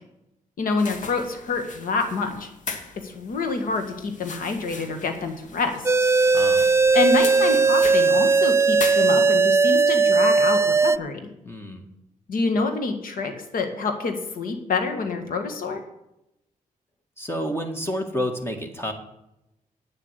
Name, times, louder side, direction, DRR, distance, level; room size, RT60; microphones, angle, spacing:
voice 1, 0.6-2.5 3.0-6.1 6.9-11.3 12.3-15.8, left 4 dB, 80° left, 6 dB, 1.8 m, -27 dB
sound 1, 0.8-9.6, left 4 dB, 65° left, 1.5 m, -39 dB
sound 2, 5.9-11.0, right 4 dB, 20° right, 0.4 m, -18 dB
voice 2, 6.3-6.7 11.5-11.9 17.2-18.9, equal, 15° left, 4 dB, 1.8 m, -29 dB
9.0 x 7.5 x 8.1 m, 0.89 s
cardioid pair, 75°, 14 cm